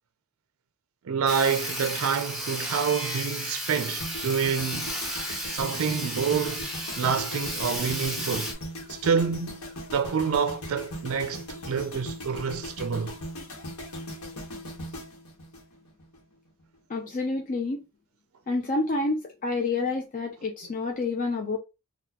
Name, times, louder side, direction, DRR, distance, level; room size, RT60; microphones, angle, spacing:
voice 1, 1.1-4.9 5.4-8.5 8.9-9.6 9.9-13.2, right 6 dB, 70° right, 0.4 m, -28 dB
Sawing, 1.3-8.5, equal, ahead, 1.1 m, -33 dB
sound 1, 4.0-16.2 16.5-16.8, equal, 85° left, 1.1 m, -39 dB
voice 2, 16.9-17.8 18.5-21.6, left 3 dB, 35° left, 0.4 m, -28 dB
4.0 x 2.3 x 2.8 m
head